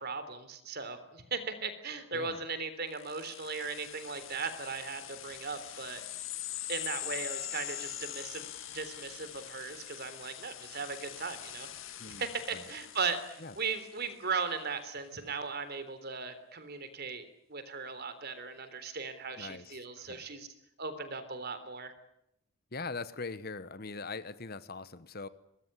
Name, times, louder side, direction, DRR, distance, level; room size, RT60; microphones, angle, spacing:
voice 1, 0.0-6.0 6.7-11.7 12.1-17.2 17.5-20.5 20.8-21.9, right 5 dB, 45° right, 11 dB, 3.7 m, -38 dB
voice 2, 2.1-2.4 12.0-12.2 12.5-12.7 13.4-13.5 19.4-20.3 22.7-25.3, left 3 dB, 45° left, 14 dB, 1.2 m, -42 dB
sound 1, 2.9-14.0, left 12 dB, 65° left, 2.0 m, -43 dB
24.0 x 21.0 x 10.0 m, 0.77 s
head